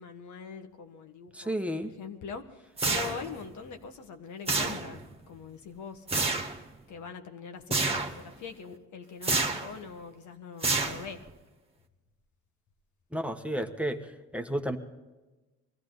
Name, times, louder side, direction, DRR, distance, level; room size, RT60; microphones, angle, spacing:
voice 1, 0.0-1.6 1.8-6.4 6.9-11.2, left 6 dB, 75° left, 6 dB, 1.5 m, -43 dB
voice 2, 1.3-1.9 13.1-14.8, right 1 dB, 5° right, 5 dB, 1.2 m, -32 dB
sound 1, 2.8-3.4 4.5-5.1 6.1-6.6 7.7-8.2 9.2-9.8 10.6-11.3, right 3 dB, 20° right, 1.7 m, -29 dB
21.5 x 14.5 x 4.0 m, 1.2 s
cardioid pair, 90°, 30 cm